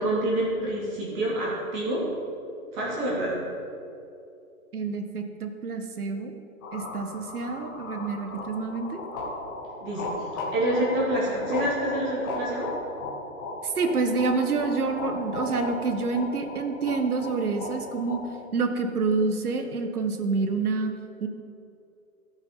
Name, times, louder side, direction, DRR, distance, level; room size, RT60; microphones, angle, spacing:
voice 1, 0.0-2.0 2.7-3.4 9.8-10.1 10.5-12.7, right 1 dB, 20° right, -5 dB, 2.1 m, -27 dB
voice 2, 4.7-6.3 6.7-9.0 13.6-18.2 18.5-20.9 21.2-21.3, right 4 dB, 80° right, 6 dB, 1.5 m, -27 dB
sound 1, 6.6-18.2, left 2 dB, 15° left, 1.0 m, -36 dB
15.0 x 6.0 x 5.6 m, 2.6 s
hypercardioid pair, 170°, 44 cm